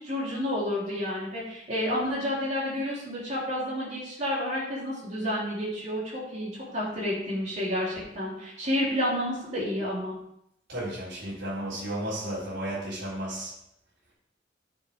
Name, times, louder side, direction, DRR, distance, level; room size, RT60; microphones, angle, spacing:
voice 1, 0.0-10.1, left 1 dB, 40° right, -6 dB, 3.4 m, -30 dB
voice 2, 10.7-13.5, right 1 dB, 70° right, -7 dB, 3.8 m, -33 dB
9.7 x 6.5 x 3.6 m, 0.78 s
head